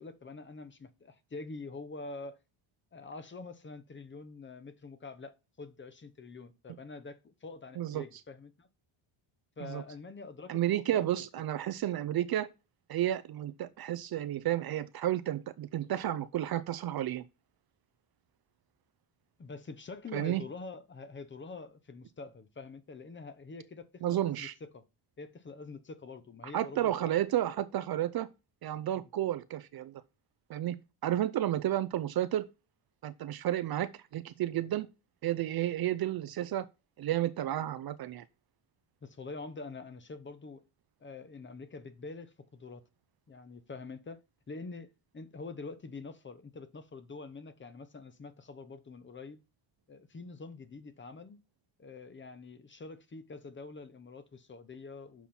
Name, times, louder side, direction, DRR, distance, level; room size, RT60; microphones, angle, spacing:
voice 1, 0.0-2.4 2.9-8.7 9.6-11.1 19.4-24.8 25.2-27.1 28.9-29.0 39.0-40.6 41.0-42.8 43.3-49.4 49.9-51.4 51.8-55.3, left 3 dB, 25° left, 0.9 m, -46 dB
voice 2, 10.5-12.5 12.9-17.2 20.1-20.4 24.0-24.5 26.5-28.3 28.6-30.0 30.5-30.8 31.0-32.5 33.0-34.9 35.2-36.7 37.0-38.2, right 12 dB, 50° right, 0.5 m, -31 dB
7.3 x 5.6 x 4.3 m
cardioid pair, 120°, 49 cm